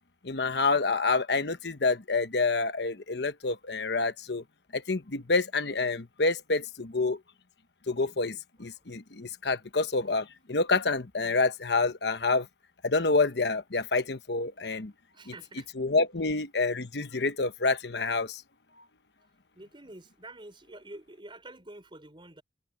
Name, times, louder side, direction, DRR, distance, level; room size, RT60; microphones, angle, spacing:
voice 1, 0.2-4.4 4.7-7.2 7.9-12.5 12.8-14.9 15.8-18.4, left 3 dB, 65° left, 1.1 m, -28 dB
voice 2, 15.1-15.7 19.5-22.4, right 2 dB, 25° right, 5.0 m, -47 dB
head